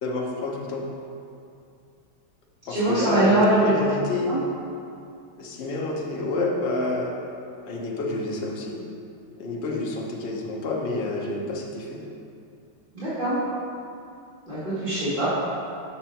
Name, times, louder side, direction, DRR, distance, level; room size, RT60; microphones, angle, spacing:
voice 1, 0.0-0.8 2.7-4.3 5.4-7.1 7.6-8.8 9.4-12.0, left 2 dB, 50° left, -2 dB, 0.7 m, -28 dB
voice 2, 2.7-3.7 4.3-4.4 12.9-13.4 14.5-15.3, right 1 dB, 25° right, -14 dB, 1.9 m, -22 dB
6.2 x 4.4 x 5.8 m, 2.5 s
omnidirectional pair, 2.2 m